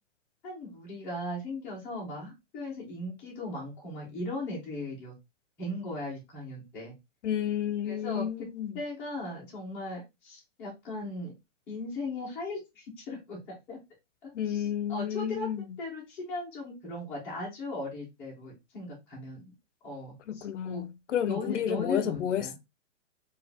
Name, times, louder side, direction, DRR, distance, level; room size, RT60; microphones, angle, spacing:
voice 1, 0.4-5.1 5.6-6.9 7.9-8.5 8.7-11.3 11.7-13.8 14.2-14.6 14.9-15.5 15.8-19.4 19.8-20.9 21.3-22.5, left 2 dB, 5° left, 0.6 m, -38 dB
voice 2, 7.2-8.8 14.3-15.6 20.3-22.6, left 9 dB, 80° left, 0.7 m, -31 dB
4.6 x 2.4 x 3.3 m
hypercardioid pair, 175°, 36 cm